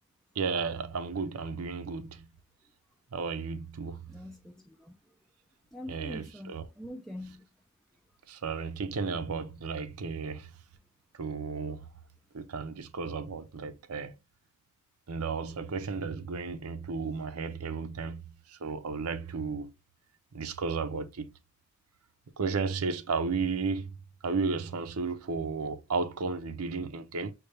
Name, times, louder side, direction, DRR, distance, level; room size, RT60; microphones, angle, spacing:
voice 1, 0.4-2.2 3.1-4.1 5.9-6.6 8.3-10.5 11.2-11.9 12.3-14.1 15.1-18.2 18.5-19.7 20.3-21.3 22.4-23.9 24.2-27.3, right 4 dB, 80° right, 0.6 m, -33 dB
voice 2, 4.1-4.9 5.7-7.5, left 1 dB, ahead, 0.4 m, -44 dB
6.5 x 2.4 x 3.2 m
head